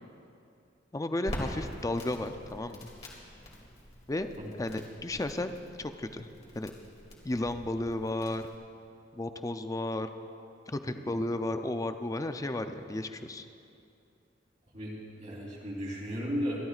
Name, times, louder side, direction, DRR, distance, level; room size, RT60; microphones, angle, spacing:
voice 1, 0.9-2.8 4.1-4.3 4.6-6.3 6.6-6.7 7.2-8.4 9.1-10.1 10.7-13.5, left 1 dB, 20° left, 8 dB, 0.5 m, -33 dB
Crackle, 1.3-8.6, equal, 35° left, 2.5 m, -45 dB
voice 2, 14.7-16.6, equal, 40° right, -3 dB, 3.3 m, -35 dB
26.5 x 12.0 x 2.5 m, 2.6 s
head